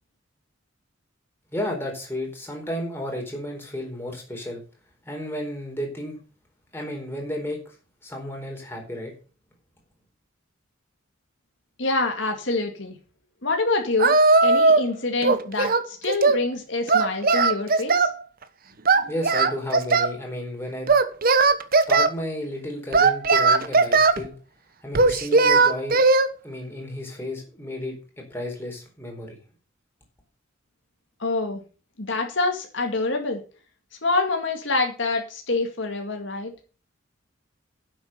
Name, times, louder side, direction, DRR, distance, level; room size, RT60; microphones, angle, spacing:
voice 1, 1.5-4.6 5.0-6.2 6.7-7.6 8.0-9.1 19.1-20.9 21.9-24.4 24.8-26.0 26.4-29.4, left 1 dB, 10° left, 1 dB, 4.2 m, -32 dB
voice 2, 11.8-13.0 13.4-18.1 31.2-31.6 32.0-33.4 34.0-36.5, left 3 dB, 65° left, 3 dB, 2.2 m, -26 dB
Singing, 14.0-14.9 15.2-16.4 16.9-18.2 18.9-20.2 20.9-22.1 22.9-24.2 24.9-26.3, right 3 dB, 50° right, 1.1 m, -18 dB
10.0 x 7.9 x 6.5 m, 0.35 s
head